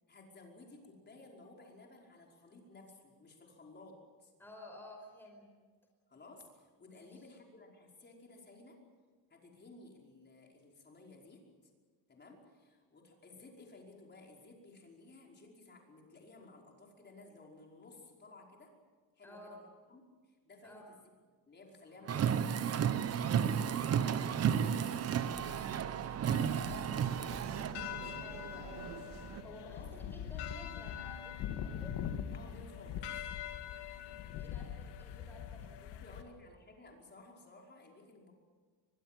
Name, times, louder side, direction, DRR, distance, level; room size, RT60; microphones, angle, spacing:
voice 1, 0.1-4.3 6.1-8.8 9.3-11.4 12.1-18.7 19.2-21.0 21.4-27.6 29.7-30.0 32.3-33.3 36.0-38.3, left 2 dB, 25° left, 0 dB, 5.2 m, -56 dB
voice 2, 4.4-5.5 6.9-7.2 19.2-19.7 20.6-20.9 28.2-32.0 34.0-36.4, equal, 5° left, 1 dB, 5.1 m, -53 dB
Car, 22.1-27.7, right 8 dB, 35° right, 0.9 m, -32 dB
sound 1, 22.7-29.4, right 8 dB, 65° right, 2.3 m, -47 dB
sound 2, 26.3-36.2, left 9 dB, 75° left, 2.1 m, -43 dB
24.0 x 21.5 x 7.7 m, 1.5 s
cardioid pair, 150°, 42 cm